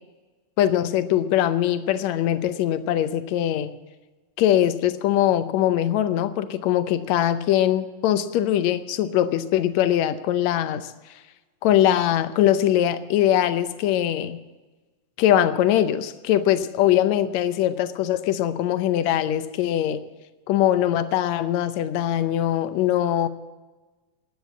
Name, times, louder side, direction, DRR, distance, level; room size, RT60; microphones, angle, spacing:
voice 1, 0.6-3.7 4.4-10.9 11.6-14.4 15.2-20.0 20.5-23.3, left 11 dB, 75° left, 11 dB, 1.7 m, -22 dB
14.5 x 10.0 x 8.0 m, 1.2 s
omnidirectional pair, 3.9 m